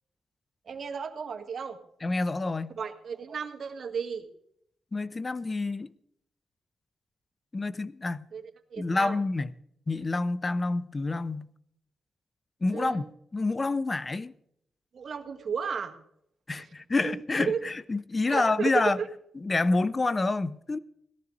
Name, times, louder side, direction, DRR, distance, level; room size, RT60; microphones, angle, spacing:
voice 1, 0.6-1.8 2.7-4.3 8.3-8.4 8.7-9.2 12.7-13.1 14.9-16.0 16.6-16.7 17.0-17.7 18.3-19.1, right 6 dB, 55° right, 1.7 m, -33 dB
voice 2, 2.0-2.8 4.9-5.9 7.5-8.3 8.8-9.5 9.9-11.5 12.6-13.1 13.3-14.3 16.5-19.0 19.4-20.8, left 3 dB, 30° left, 0.6 m, -28 dB
18.0 x 13.0 x 4.0 m
cardioid pair, 85°, 0 cm